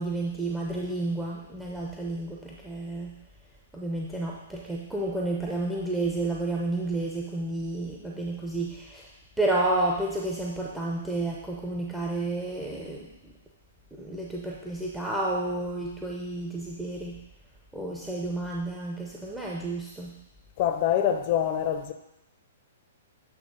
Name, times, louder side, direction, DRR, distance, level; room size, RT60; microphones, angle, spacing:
voice 1, 0.0-3.1 3.7-9.1 9.4-13.3 13.9-17.2 17.7-20.1, right 2 dB, 5° right, 0.8 m, -31 dB
voice 2, 20.6-21.9, left 10 dB, 45° left, 0.7 m, -25 dB
8.4 x 3.1 x 5.3 m
hypercardioid pair, 120°, 0 cm